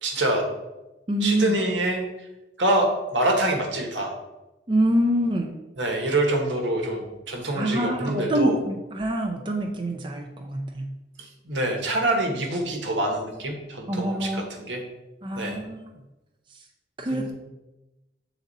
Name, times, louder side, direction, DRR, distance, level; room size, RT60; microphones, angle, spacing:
voice 1, 0.0-0.4 1.2-2.3 2.6-4.1 5.8-8.6 11.2-14.8 15.3-15.6 17.1-17.3, right 1 dB, 80° right, 2 dB, 1.3 m, -26 dB
voice 2, 1.1-1.5 4.7-5.5 7.6-10.9 13.9-14.4 15.2-15.8 17.0-17.3, right 1 dB, 25° right, 2 dB, 0.5 m, -25 dB
7.1 x 4.0 x 4.0 m, 1.0 s
head